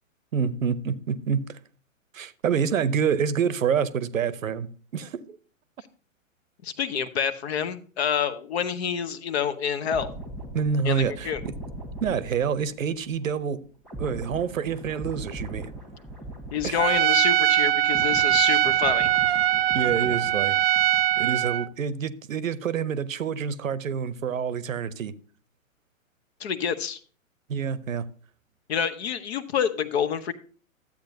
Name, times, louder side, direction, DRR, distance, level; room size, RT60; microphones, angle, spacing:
voice 1, 0.3-1.6 2.1-5.4 10.5-11.3 12.0-13.6 14.0-15.7 16.6-16.8 19.7-20.6 21.2-25.1 27.5-28.1, right 7 dB, 70° right, 0.8 m, -27 dB
voice 2, 6.6-10.1 10.8-11.4 16.5-19.1 26.4-27.0 28.7-30.3, left 8 dB, 50° left, 1.0 m, -28 dB
sound 1, 9.8-17.3 17.6-21.3 21.6-21.9, right 1 dB, ahead, 1.4 m, -40 dB
Trumpet, 16.8-21.7, right 13 dB, 50° right, 0.4 m, -22 dB
12.0 x 8.4 x 2.7 m
figure-of-eight pair, 110°, 41 cm